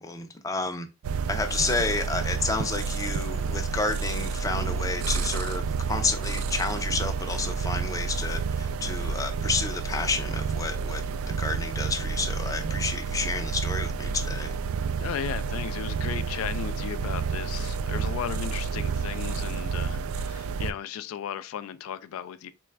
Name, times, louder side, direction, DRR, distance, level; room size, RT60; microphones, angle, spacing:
voice 1, 0.0-0.9 1.3-14.5, left 3 dB, 15° left, 0.4 m, -30 dB
sound 1, 1.0-20.7, right 5 dB, 85° right, 0.3 m, -30 dB
voice 2, 15.0-22.5, left 9 dB, 90° left, 0.3 m, -35 dB
4.0 x 2.3 x 3.2 m
head